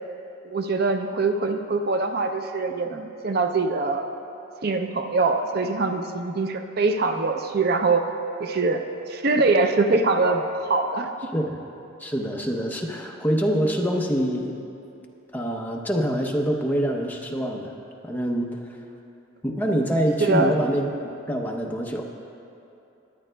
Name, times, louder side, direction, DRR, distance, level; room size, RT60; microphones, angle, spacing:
voice 1, 0.5-4.1 4.6-8.0 8.4-8.8 9.1-11.1 20.2-20.5, right 3 dB, 50° right, 5 dB, 0.5 m, -23 dB
voice 2, 11.3-11.6 12.0-14.6 15.3-17.8 18.0-18.8 19.4-20.9 21.3-22.0, equal, 10° left, 0 dB, 0.7 m, -25 dB
20.0 x 10.0 x 2.2 m, 2.8 s
head